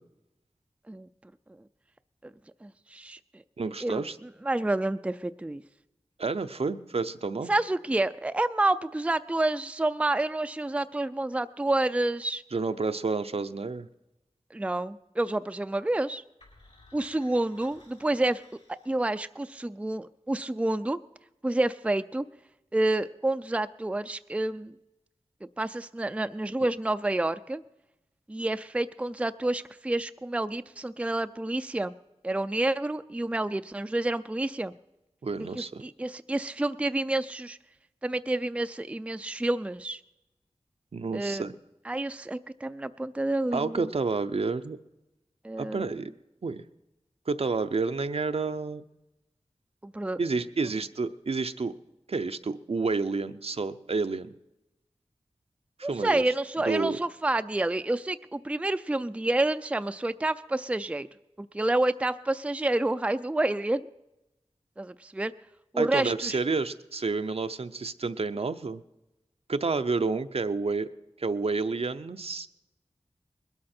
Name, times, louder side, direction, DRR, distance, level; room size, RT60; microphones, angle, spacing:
voice 1, 2.6-3.4 3.8-4.0 4.4-5.6 7.5-12.4 14.5-16.2 16.9-18.4 18.9-21.0 21.4-22.2 22.7-24.7 25.6-27.6 28.3-31.9 32.2-34.7 35.6-37.6 38.0-40.0 41.1-41.5 41.9-43.9 45.4-45.9 49.8-50.2 55.8-61.1 61.4-63.8 64.8-65.3 65.7-66.4, right 2 dB, 10° right, 11 dB, 0.4 m, -29 dB
voice 2, 3.6-4.2 6.2-7.5 12.5-13.9 35.2-35.8 40.9-41.5 43.5-44.8 45.6-46.1 46.4-46.6 47.3-48.8 50.2-51.7 52.1-54.3 55.8-56.2 56.6-57.0 65.8-68.8 69.5-70.9 71.2-72.5, right 4 dB, 60° right, 10 dB, 0.6 m, -30 dB
sound 1, 16.4-19.4, left 2 dB, 70° left, 4.4 m, -57 dB
20.5 x 12.5 x 4.4 m, 0.97 s
wide cardioid pair, 45°, 11 cm